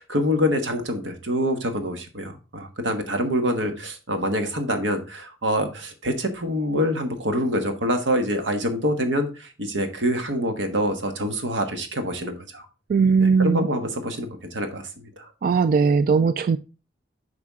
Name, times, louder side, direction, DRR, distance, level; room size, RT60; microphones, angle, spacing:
voice 1, 0.0-12.7 13.2-15.3, equal, 85° right, 1.4 m, -26 dB
voice 2, 12.9-13.7 15.4-16.6, right 5 dB, 50° right, 0.3 m, -19 dB
8.5 x 4.9 x 3.6 m
head